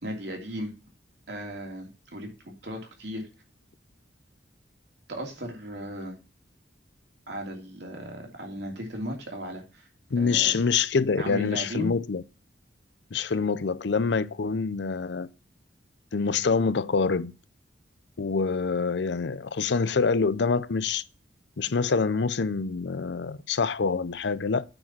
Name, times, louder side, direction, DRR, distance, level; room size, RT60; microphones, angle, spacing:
voice 1, 0.0-0.7 1.3-3.3 5.1-6.2 7.3-9.9 10.2-10.6 11.1-11.9, equal, 65° right, 2.9 m, -36 dB
voice 2, 10.1-12.2 13.1-15.3 16.1-17.3 18.2-21.0 21.6-24.6, left 5 dB, 65° left, 0.5 m, -26 dB
8.9 x 4.9 x 6.0 m
head